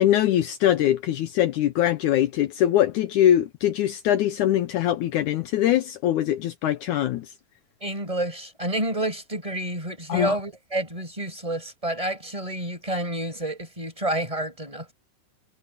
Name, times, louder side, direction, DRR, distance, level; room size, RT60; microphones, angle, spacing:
voice 1, 0.0-7.3 10.1-10.4, left 12 dB, 75° left, 1.8 m, -22 dB
voice 2, 7.8-14.9, right 1 dB, 10° right, 7.4 m, -29 dB
omnidirectional pair, 4.2 m